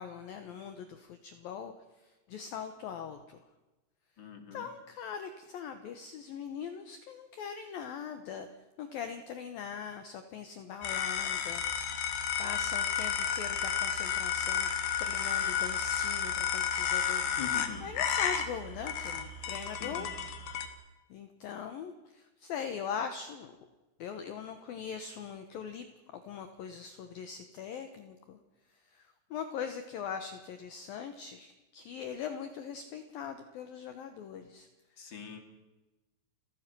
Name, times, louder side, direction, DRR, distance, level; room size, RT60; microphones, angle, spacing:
voice 1, 0.0-3.4 4.5-8.5 8.8-11.6 12.4-14.7 15.0-17.2 17.8-20.1 21.1-23.6 24.0-25.9 26.1-28.4 28.7-34.7, left 7 dB, 75° left, 8 dB, 2.1 m, -41 dB
voice 2, 4.2-4.7 17.2-17.9 19.8-20.1 35.0-35.4, left 6 dB, 35° left, 5 dB, 2.3 m, -43 dB
sound 1, 10.8-20.7, left 8 dB, 60° left, 3.4 m, -32 dB
30.0 x 17.0 x 6.2 m, 1.1 s
omnidirectional pair, 6.0 m